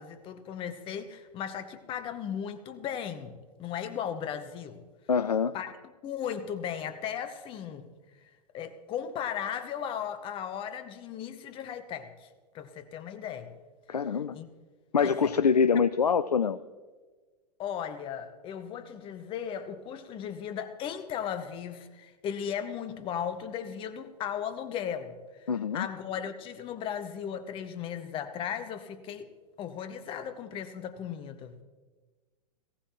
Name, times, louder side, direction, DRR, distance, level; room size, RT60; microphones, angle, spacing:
voice 1, 0.0-4.8 5.5-5.7 6.0-7.9 8.5-12.3 12.5-13.5 14.3-14.5 15.0-15.3 17.6-25.2 25.7-29.3 29.6-31.6, left 8 dB, 25° left, 10 dB, 0.9 m, -36 dB
voice 2, 5.1-5.6 13.9-14.4 14.9-16.6 25.5-25.9, left 6 dB, 85° left, 15 dB, 0.4 m, -25 dB
18.5 x 15.5 x 3.1 m, 1.4 s
figure-of-eight pair, 100°, 20 cm